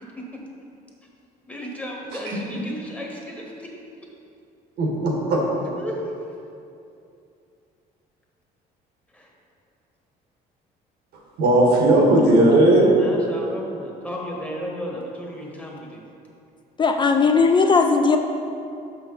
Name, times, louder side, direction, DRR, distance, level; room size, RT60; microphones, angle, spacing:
voice 1, 1.5-3.7 5.8-6.1 9.1-9.3 13.0-16.0, equal, 10° left, -2 dB, 1.1 m, -34 dB
voice 2, 4.8-5.4 11.4-13.0, right 1 dB, 80° right, -1 dB, 1.4 m, -17 dB
voice 3, 16.8-18.2, left 4 dB, 30° left, 5 dB, 0.3 m, -17 dB
6.1 x 5.6 x 3.9 m, 2.6 s
cardioid pair, 110°, 17 cm